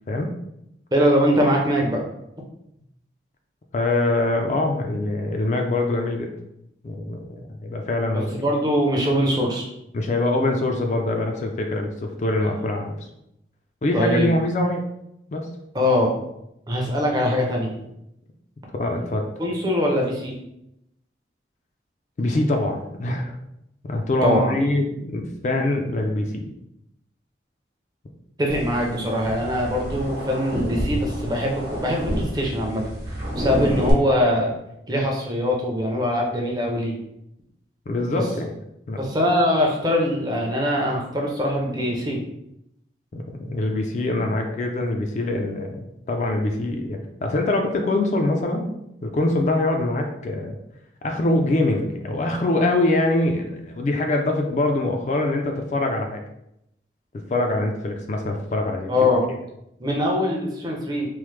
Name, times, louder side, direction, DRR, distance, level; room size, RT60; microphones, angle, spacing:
voice 1, 0.9-2.0 8.1-9.6 13.9-14.3 15.7-16.1 16.7-17.8 19.4-20.3 24.2-24.6 28.4-32.8 33.3-34.5 34.9-36.9 38.1-38.2 39.0-42.2 58.9-59.3 59.8-61.1, equal, 20° right, -1 dB, 0.5 m, -22 dB
voice 2, 3.7-6.3 6.8-7.2 7.6-8.4 9.9-12.9 13.8-14.8 15.3-15.5 18.7-19.2 22.2-23.3 23.8-26.5 37.9-38.5 38.9-39.1 43.1-50.6 51.0-56.2 57.3-59.1, left 2 dB, 40° left, 3 dB, 0.3 m, -24 dB
sound 1, 28.5-33.9, equal, 70° right, 0.9 m, -29 dB
3.1 x 2.0 x 3.2 m, 0.81 s
head